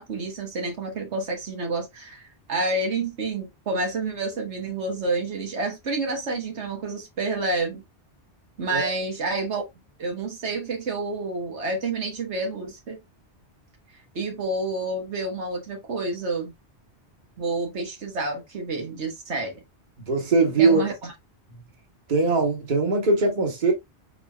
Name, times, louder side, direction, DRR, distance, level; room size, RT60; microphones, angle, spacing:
voice 1, 0.0-7.8 8.6-9.6 10.0-13.0 14.1-16.5 17.4-19.6 20.6-21.1, right 3 dB, 90° right, 1.6 m, -29 dB
voice 2, 20.1-20.8 22.1-23.7, right 3 dB, 45° right, 1.3 m, -21 dB
4.2 x 3.8 x 2.3 m
omnidirectional pair, 1.1 m